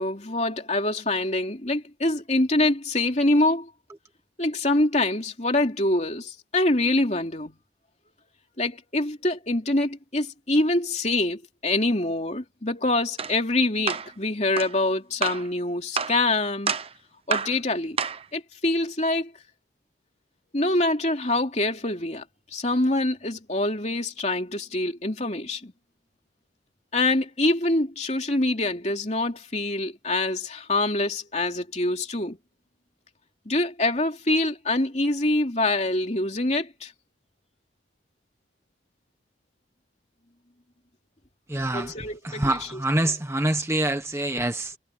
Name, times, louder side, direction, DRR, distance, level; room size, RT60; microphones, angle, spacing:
voice 1, 0.0-3.7 4.4-7.6 8.6-16.7 17.3-18.0 18.3-19.3 20.5-22.2 22.5-25.7 26.9-32.4 33.4-36.9 41.7-42.4, left 2 dB, 35° left, 3.2 m, -25 dB
sound 1, 13.2-13.3 13.9-14.1 14.6-14.7 15.2-15.5 16.0-16.2 16.7-16.9 17.3-17.6 18.0-18.2, right 6 dB, 30° right, 0.9 m, -28 dB
voice 2, 41.5-44.8, right 1 dB, 15° right, 1.1 m, -26 dB
head